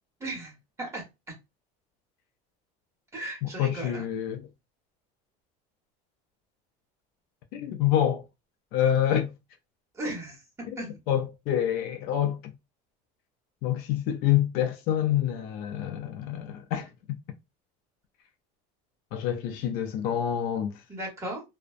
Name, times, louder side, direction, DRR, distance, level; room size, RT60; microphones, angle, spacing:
voice 1, 0.2-1.0 3.1-4.0 9.9-10.4 10.8-10.9 20.9-21.4, right 1 dB, 15° right, 1.2 m, -36 dB
voice 2, 3.4-4.5 7.5-8.2 8.7-9.3 11.1-12.5 13.6-17.2 19.1-20.8, left 10 dB, 55° left, 0.4 m, -27 dB
2.4 x 2.1 x 2.4 m
cardioid pair, 145°, 19 cm